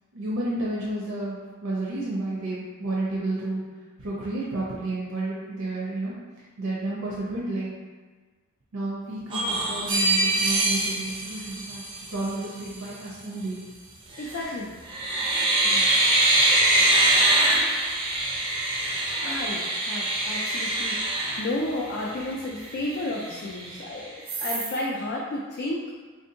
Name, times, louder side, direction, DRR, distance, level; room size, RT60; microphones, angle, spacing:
voice 1, 0.1-3.6 4.0-6.1 6.6-7.8 8.7-11.8 12.1-13.6 15.6-15.9, right 2 dB, 75° right, -6 dB, 0.5 m, -31 dB
sound 1, 9.3-12.3 14.1-14.5 14.9-22.1 22.6-22.7 23.0-23.8 24.3-24.8, right 2 dB, 25° right, 0.4 m, -24 dB
voice 2, 14.2-14.7 19.2-21.1 21.4-25.9, left 1 dB, 50° left, -3 dB, 0.3 m, -32 dB
3.4 x 2.6 x 2.6 m, 1.4 s
head